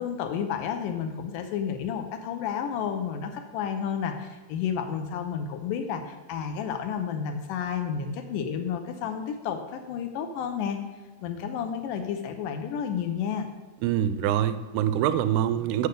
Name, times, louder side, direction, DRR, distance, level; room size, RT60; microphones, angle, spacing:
voice 1, 0.0-10.8 11.2-13.5, left 7 dB, 80° left, 6 dB, 1.9 m, -31 dB
voice 2, 13.8-15.9, right 10 dB, 85° right, 12 dB, 2.5 m, -25 dB
8.6 x 6.8 x 6.7 m, 1.3 s
omnidirectional pair, 4.7 m